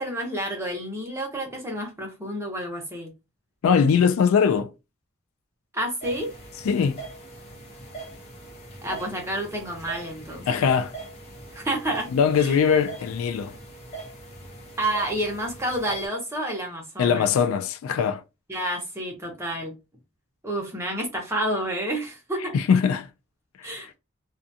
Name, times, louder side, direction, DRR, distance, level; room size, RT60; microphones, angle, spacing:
voice 1, 0.0-3.1 5.7-6.3 8.8-10.7 11.5-12.1 12.4-12.6 14.8-17.3 18.5-19.7 20.4-22.6 23.6-23.9, right 1 dB, 10° right, 0.8 m, -29 dB
voice 2, 3.6-4.7 6.6-7.0 10.5-10.9 12.1-13.5 17.0-18.2 22.5-23.1 23.7-23.9, left 6 dB, 75° left, 0.3 m, -21 dB
sound 1, 6.0-16.1, right 3 dB, 30° left, 0.8 m, -42 dB
2.4 x 2.3 x 2.6 m
head